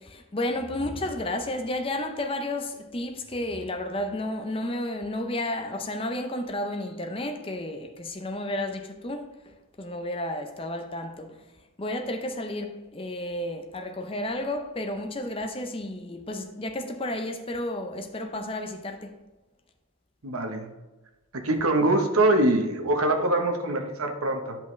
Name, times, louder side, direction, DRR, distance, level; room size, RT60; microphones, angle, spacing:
voice 1, 0.0-11.4 11.8-19.2, left 1 dB, 25° left, 0.6 m, -32 dB
voice 2, 20.2-20.7 21.3-24.6, right 2 dB, 85° right, 1.1 m, -24 dB
10.5 x 5.6 x 3.2 m
head